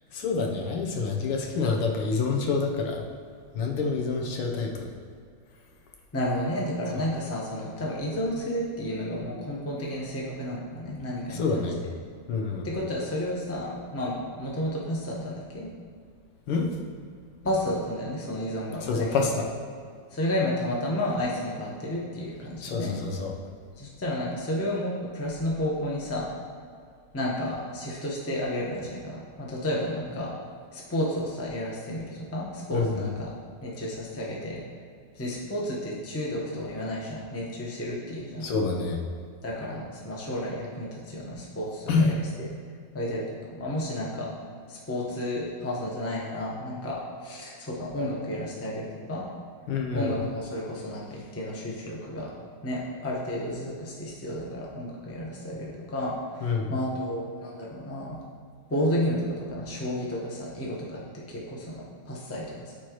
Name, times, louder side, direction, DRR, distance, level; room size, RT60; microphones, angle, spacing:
voice 1, 0.1-3.0 3.5-4.9 6.9-7.1 11.3-11.8 12.3-12.7 16.5-16.7 18.8-19.5 22.6-23.3 32.7-33.1 38.4-39.0 41.9-42.1 49.7-50.1 56.4-56.7, left 4 dB, 90° left, 0 dB, 1.9 m, -27 dB
voice 2, 6.1-11.6 12.6-15.7 17.4-19.3 20.1-23.0 23.8-26.2 27.1-30.4 30.7-33.3 33.6-34.6 35.2-38.5 39.4-41.8 42.9-43.2 43.5-44.3 44.7-49.2 49.9-52.3 52.6-58.2 58.7-61.8 62.1-62.6, left 1 dB, 10° left, -4 dB, 0.6 m, -31 dB
13.5 x 4.5 x 3.1 m, 2.2 s
omnidirectional pair, 2.4 m